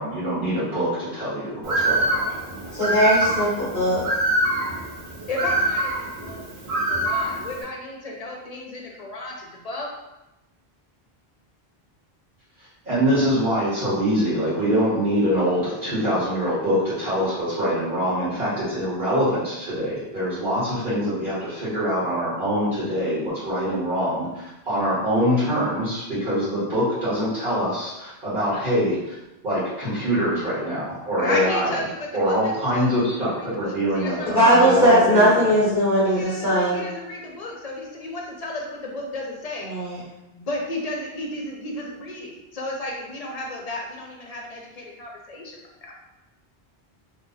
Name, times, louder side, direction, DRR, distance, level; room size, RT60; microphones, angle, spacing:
voice 1, 0.0-2.3 12.8-29.1 29.4-31.8 32.1-35.5, equal, 55° right, -11 dB, 1.6 m, -24 dB
Bird, 1.6-7.6, right 1 dB, 90° right, 1.2 m, -25 dB
voice 2, 2.7-4.0 34.3-36.8 39.7-40.0, equal, 15° left, -9 dB, 1.3 m, -19 dB
voice 3, 5.3-6.5 6.8-9.9 31.2-34.8 36.1-39.7 40.3-45.9, left 2 dB, 45° left, -1 dB, 0.7 m, -33 dB
3.0 x 2.5 x 3.9 m, 0.97 s
omnidirectional pair, 1.0 m